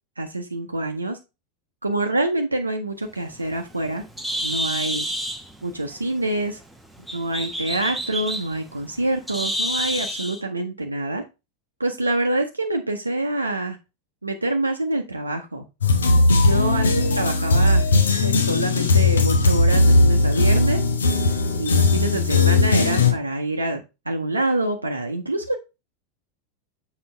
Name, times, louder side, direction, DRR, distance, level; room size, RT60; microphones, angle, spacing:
voice 1, 0.2-1.2 1.8-4.0 4.4-5.0 5.6-6.6 7.1-11.2 11.8-13.8 14.2-15.6 16.4-17.8 18.1-20.8 21.6-25.5, right 2 dB, 80° right, 3 dB, 0.7 m, -26 dB
Bird, 3.1-10.4, equal, ahead, 1.0 m, -30 dB
sound 1, 15.8-23.1, left 3 dB, 70° left, 1.0 m, -18 dB
6.9 x 4.8 x 3.3 m, 0.26 s
figure-of-eight pair, 85°, 0 cm